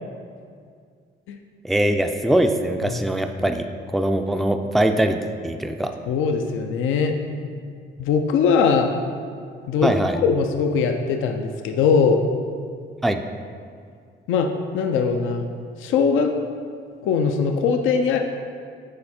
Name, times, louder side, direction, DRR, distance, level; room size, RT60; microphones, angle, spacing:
voice 1, 1.6-3.6 3.9-5.2 5.4-5.9 9.8-10.2 13.0-13.2, right 1 dB, ahead, 6 dB, 0.3 m, -21 dB
voice 2, 6.1-7.4 8.0-8.9 9.7-12.2 14.3-14.5 14.7-15.5 15.8-16.3 17.0-18.2, left 5 dB, 85° left, 4 dB, 0.5 m, -21 dB
6.6 x 4.7 x 4.2 m, 2.2 s
cardioid pair, 90°, 20 cm